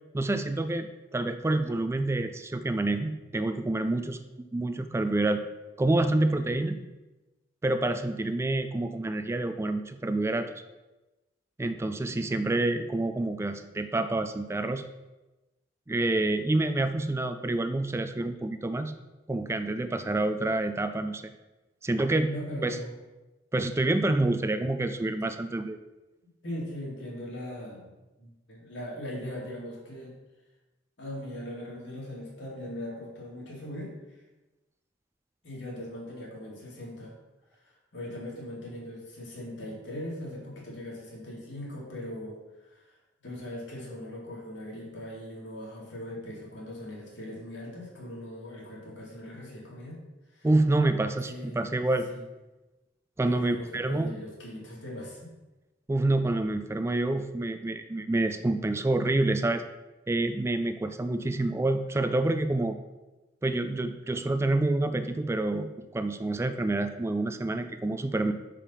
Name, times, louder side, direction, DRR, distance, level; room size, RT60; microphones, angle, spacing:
voice 1, 0.1-4.2 4.5-5.4 5.8-6.8 7.6-10.6 11.6-14.8 15.9-18.9 19.3-21.3 21.8-22.3 22.6-22.8 23.5-25.8 50.4-52.1 53.2-54.1 55.9-59.6 60.1-62.8 63.4-68.3, right 2 dB, 15° right, 9 dB, 0.3 m, -27 dB
voice 2, 22.3-23.0 26.4-27.9 28.2-30.2 31.0-34.2 35.4-37.1 37.6-50.0 50.3-50.5 51.2-52.2 53.3-55.3, left 1 dB, 80° left, -3 dB, 2.2 m, -40 dB
5.5 x 5.0 x 5.5 m, 1.1 s
head